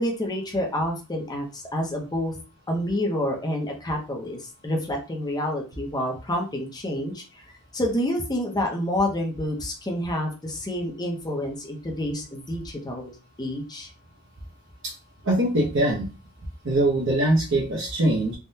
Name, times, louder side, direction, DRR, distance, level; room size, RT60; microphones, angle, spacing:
voice 1, 0.0-2.3 2.7-7.5 7.7-13.1 13.4-13.9, left 1 dB, 20° left, 2 dB, 0.6 m, -28 dB
voice 2, 15.2-16.1 16.6-18.3, right 1 dB, 55° right, -5 dB, 0.7 m, -22 dB
3.5 x 2.2 x 2.7 m, 0.33 s
head